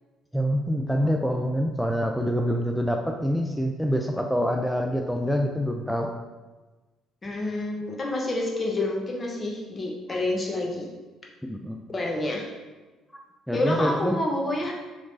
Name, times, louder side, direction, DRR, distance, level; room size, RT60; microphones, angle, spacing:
voice 1, 0.3-6.1 11.5-11.8 13.5-14.2, equal, ahead, 2 dB, 0.3 m, -26 dB
voice 2, 7.2-10.9 11.9-12.5 13.5-14.7, left 1 dB, 35° left, 0 dB, 0.8 m, -28 dB
3.1 x 3.1 x 2.6 m, 1.2 s
supercardioid pair, 60°, 0 cm